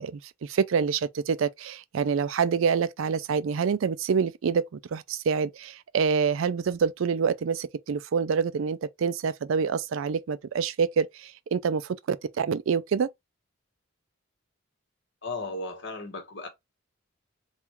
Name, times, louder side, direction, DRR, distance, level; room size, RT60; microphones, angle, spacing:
voice 1, 0.0-4.6 4.9-13.1, right 6 dB, 70° right, 0.4 m, -26 dB
voice 2, 15.2-16.5, left 2 dB, 55° left, 1.2 m, -35 dB
3.6 x 2.4 x 4.2 m
head